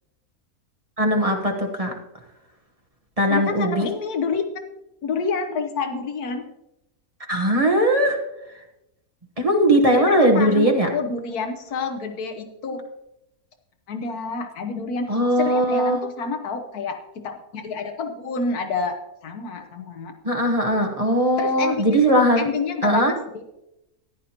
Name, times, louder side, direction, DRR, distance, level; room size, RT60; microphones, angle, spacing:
voice 1, 1.0-1.9 3.2-3.9 7.3-8.2 9.4-10.9 15.1-16.0 20.2-22.5 22.8-23.1, right 1 dB, 25° right, 1 dB, 1.2 m, -19 dB
voice 2, 3.3-4.4 5.0-6.4 9.9-12.8 13.9-15.1 15.4-19.0 19.2-20.1 21.4-22.0 22.4-23.2, left 5 dB, 85° left, 5 dB, 1.4 m, -28 dB
14.5 x 10.5 x 2.9 m, 0.88 s
omnidirectional pair, 1.6 m